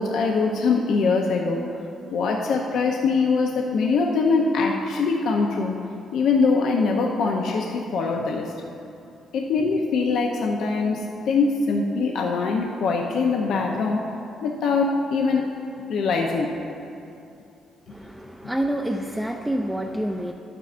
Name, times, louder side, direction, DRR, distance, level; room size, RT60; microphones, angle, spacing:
voice 1, 0.0-1.6 2.1-5.7 6.1-8.5 9.3-14.0 14.4-15.5 15.9-16.5, left 4 dB, 75° left, 0 dB, 0.6 m, -23 dB
voice 2, 17.9-20.3, right 1 dB, 5° right, 2 dB, 0.4 m, -28 dB
11.5 x 9.2 x 2.5 m, 2.6 s
cardioid pair, 90°, 0 cm